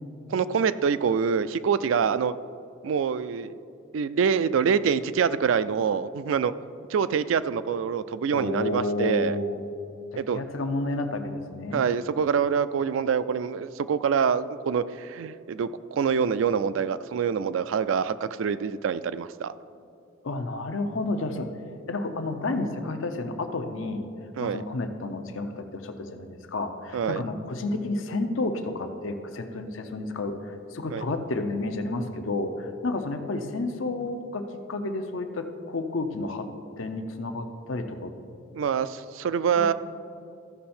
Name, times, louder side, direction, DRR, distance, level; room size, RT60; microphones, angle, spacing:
voice 1, 0.3-2.3 2.8-3.5 3.9-6.5 6.9-9.4 10.2-10.4 11.7-19.5 24.4-24.6 26.9-27.2 30.9-31.0 38.5-39.7, right 6 dB, 85° right, 14 dB, 0.3 m, -25 dB
voice 2, 8.3-9.6 10.1-11.8 20.2-21.5 21.9-24.1 24.4-36.5 36.8-38.1 39.6-39.7, left 2 dB, 85° left, 7 dB, 0.7 m, -31 dB
14.5 x 5.6 x 4.3 m, 2.6 s
head